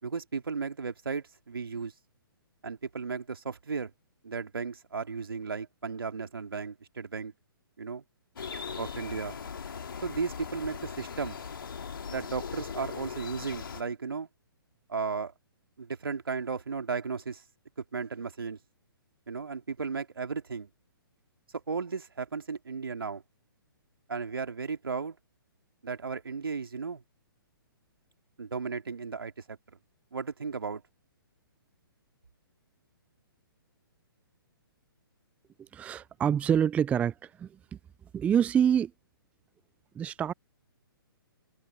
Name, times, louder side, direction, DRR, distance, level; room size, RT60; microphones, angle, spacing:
voice 1, 0.0-1.9 2.6-3.9 4.2-7.3 7.8-8.0 8.8-9.4 10.0-11.4 12.1-14.3 14.9-15.3 15.8-17.4 17.9-18.6 19.3-20.7 21.5-23.2 24.1-25.2 25.8-27.0 28.4-29.6 30.1-30.8, right 5 dB, 70° right, 2.6 m, -35 dB
sound 1, 8.4-13.8, left 6 dB, 65° left, 2.8 m, -39 dB
voice 2, 35.6-37.8 38.1-38.9 39.9-40.3, right 8 dB, 10° right, 0.5 m, -26 dB
figure-of-eight pair, 125°, 12 cm